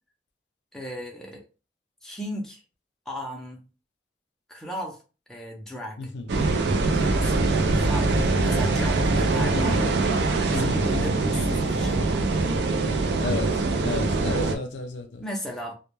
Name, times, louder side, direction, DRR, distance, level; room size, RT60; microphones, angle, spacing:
voice 1, 0.7-1.4 2.0-2.6 3.1-3.6 4.5-5.0 5.3-6.1 6.9-10.0 10.5-12.5 15.2-15.7, equal, 5° left, 0.5 m, -36 dB
voice 2, 6.0-6.3 9.5-10.0 10.5-11.2 13.2-15.2, left 2 dB, 85° left, 0.5 m, -32 dB
sound 1, 6.3-14.6, right 3 dB, 75° right, 0.4 m, -23 dB
2.2 x 2.1 x 3.0 m
head